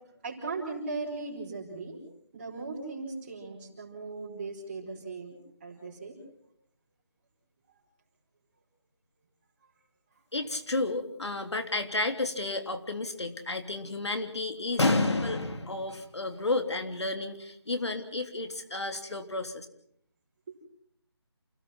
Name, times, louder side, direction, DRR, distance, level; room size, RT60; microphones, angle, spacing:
voice 1, 0.0-2.0 2.3-5.3 5.6-6.2 7.7-7.8, right 3 dB, 25° right, -4 dB, 4.7 m, -38 dB
voice 2, 10.3-19.6, left 2 dB, 75° left, 6 dB, 3.4 m, -31 dB
28.5 x 17.5 x 6.0 m, 0.67 s
figure-of-eight pair, 170°, 14 cm